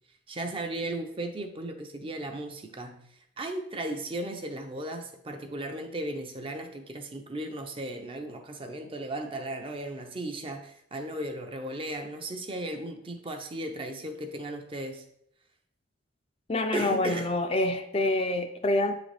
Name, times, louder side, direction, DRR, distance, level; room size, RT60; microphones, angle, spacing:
voice 1, 0.3-3.0 3.4-15.1 16.7-17.3, right 1 dB, 25° right, 5 dB, 0.5 m, -36 dB
voice 2, 16.5-18.9, left 2 dB, 30° left, 6 dB, 0.4 m, -26 dB
7.9 x 3.8 x 3.3 m, 0.73 s
head